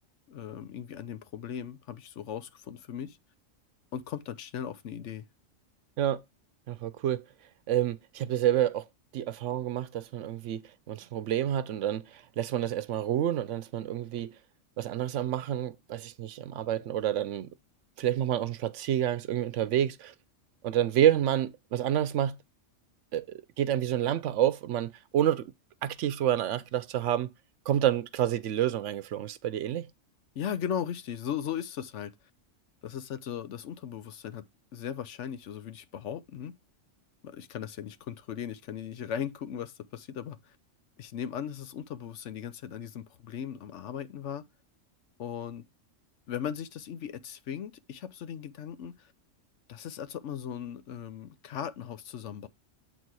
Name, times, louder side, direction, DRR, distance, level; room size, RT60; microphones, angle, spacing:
voice 1, 0.3-3.2 3.9-5.2 30.3-32.1 32.8-34.4 34.7-36.6 37.2-40.6 41.0-44.4 45.2-45.6 46.3-49.1 49.7-52.5, left 9 dB, 70° left, 1.0 m, -38 dB
voice 2, 6.7-7.2 7.7-8.9 9.1-14.4 14.8-17.5 18.0-20.1 20.6-22.4 23.1-25.5 25.8-27.3 27.7-29.9, right 11 dB, 75° right, 0.9 m, -28 dB
8.0 x 4.2 x 4.6 m
omnidirectional pair, 1.3 m